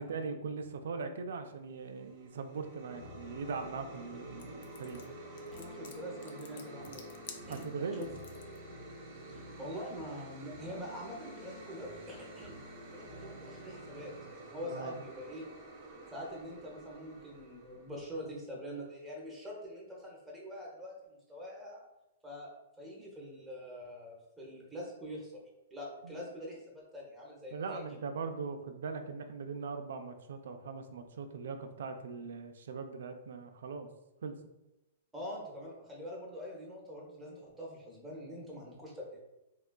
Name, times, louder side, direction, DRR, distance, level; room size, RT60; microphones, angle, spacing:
voice 1, 0.0-5.0 7.5-8.1 14.6-15.0 26.0-26.1 27.5-33.9 34.2-34.4, right 4 dB, 75° right, 7 dB, 0.3 m, -40 dB
sound 1, 1.8-18.2, right 2 dB, 40° right, 0.6 m, -51 dB
sound 2, 2.9-14.3, left 1 dB, 80° left, 0.8 m, -51 dB
sound 3, 4.4-8.6, left 6 dB, 65° left, 0.4 m, -51 dB
voice 2, 5.5-7.1 7.5-8.2 9.3-12.6 12.9-15.4 16.1-21.8 22.2-22.5 22.8-25.4 25.7-27.8 35.1-39.2, equal, 5° right, -3 dB, 0.8 m, -44 dB
3.5 x 2.3 x 2.3 m, 0.94 s
hypercardioid pair, 140°, 0 cm